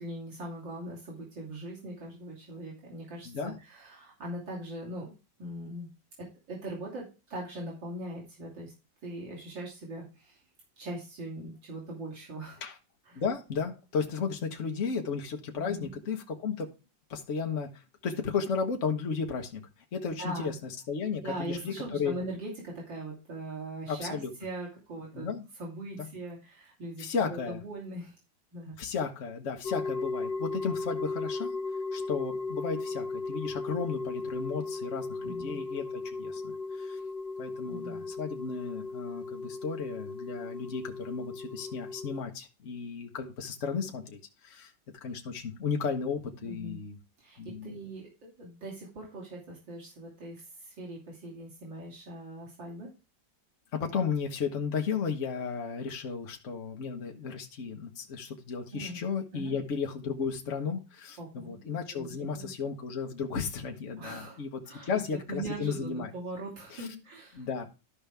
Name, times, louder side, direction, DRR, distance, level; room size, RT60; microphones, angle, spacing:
voice 1, 0.0-5.1 5.4-5.9 6.2-8.7 9.0-10.4 10.8-12.6 13.1-13.2 15.5-15.9 20.2-20.5 21.2-25.3 25.6-28.2 28.5-28.8 35.2-35.6 37.6-38.0 46.4-46.8 47.2-52.9 58.7-59.0 59.3-59.5 61.2-61.5 61.9-62.5 64.0-67.7, right 1 dB, 90° right, -4 dB, 3.6 m, -41 dB
voice 2, 13.1-16.7 17.1-19.6 19.9-20.6 20.9-22.1 23.9-24.3 25.1-25.5 26.0-26.1 27.0-27.6 28.8-31.6 31.9-37.0 37.4-44.7 45.0-47.0 47.4-47.7 53.7-66.1 66.7-66.9 67.3-67.6, left 5 dB, 45° left, 3 dB, 1.5 m, -34 dB
sound 1, 29.6-42.2, left 3 dB, 75° left, 1.8 m, -36 dB
13.0 x 5.2 x 3.5 m, 0.30 s
omnidirectional pair, 2.0 m